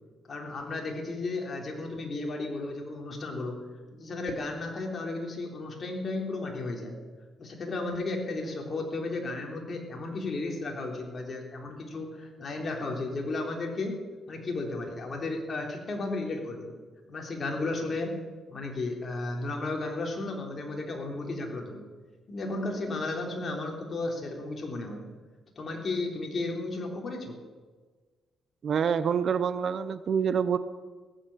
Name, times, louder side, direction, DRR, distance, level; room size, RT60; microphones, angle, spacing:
voice 1, 0.3-3.6 3.9-7.0 7.4-14.0 14.3-16.7 17.1-18.1 18.5-21.9 22.3-25.1 25.5-27.4, left 2 dB, 40° left, 1 dB, 3.3 m, -34 dB
voice 2, 28.6-30.6, right 7 dB, 55° right, 13 dB, 0.7 m, -26 dB
18.0 x 8.2 x 7.2 m, 1.4 s
cardioid pair, 90°, 0 cm